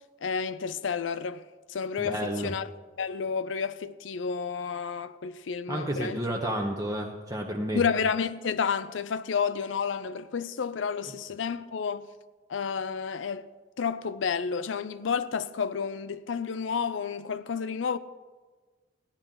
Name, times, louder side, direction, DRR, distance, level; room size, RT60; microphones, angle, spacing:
voice 1, 0.2-1.4 1.7-2.7 3.0-6.2 6.4-6.5 7.7-12.1 12.5-13.5 13.8-18.0, left 6 dB, 90° left, 0.5 m, -30 dB
voice 2, 2.0-2.5 5.7-7.8, right 1 dB, 20° right, 0.8 m, -31 dB
16.0 x 10.5 x 3.9 m
head